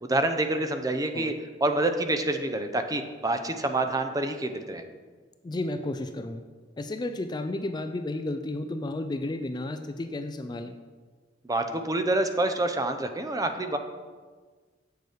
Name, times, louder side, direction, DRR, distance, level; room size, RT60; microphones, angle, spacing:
voice 1, 0.0-1.3 1.6-4.8 11.4-13.8, right 2 dB, 20° right, 7 dB, 0.6 m, -27 dB
voice 2, 5.4-6.4 6.8-10.7, left 2 dB, 25° left, 8 dB, 0.4 m, -32 dB
7.9 x 6.7 x 5.0 m, 1.4 s
head